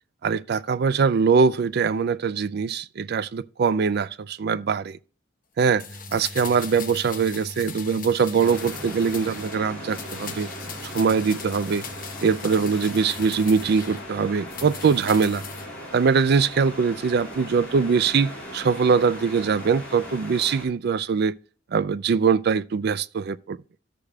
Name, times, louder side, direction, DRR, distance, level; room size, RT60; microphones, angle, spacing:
voice 1, 0.2-5.0 5.6-5.8 6.1-10.5 10.8-11.8 12.2-15.4 15.9-21.3 21.7-23.6, right 5 dB, 55° right, 0.4 m, -22 dB
sound 1, 5.8-9.6 9.9-14.1 14.5-15.7 16.0-16.1, left 4 dB, 45° left, 1.0 m, -38 dB
sound 2, 8.4-20.6, equal, 5° left, 4.3 m, -39 dB
14.0 x 6.6 x 2.3 m
head